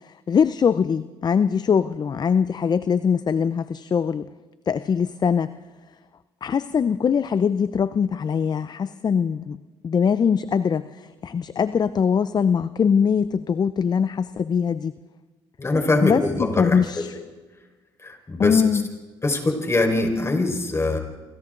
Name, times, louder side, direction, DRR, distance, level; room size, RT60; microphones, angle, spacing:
voice 1, 0.0-4.3 4.7-5.5 6.4-9.6 9.8-14.9 16.0-17.1 18.4-18.9, left 6 dB, 40° left, 14 dB, 0.6 m, -22 dB
voice 2, 15.6-16.8 18.0-18.6 19.2-21.0, left 2 dB, 25° left, 3 dB, 4.9 m, -22 dB
28.5 x 25.5 x 3.9 m, 1.3 s
supercardioid pair, 70°, 11 cm